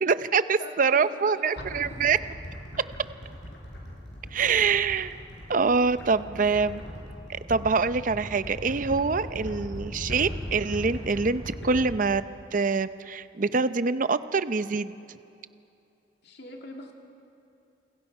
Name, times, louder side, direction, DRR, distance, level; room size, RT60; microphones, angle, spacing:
voice 1, 0.0-2.2 4.3-5.2 5.5-6.8 7.3-12.2 12.5-14.9, right 5 dB, 50° right, 13 dB, 0.6 m, -25 dB
voice 2, 0.6-2.1 8.8-9.0 16.2-16.9, left 2 dB, 65° left, 2 dB, 2.6 m, -42 dB
sound 1, 1.6-11.8, equal, 85° left, 6.2 m, -39 dB
28.5 x 22.0 x 5.5 m, 2.7 s
head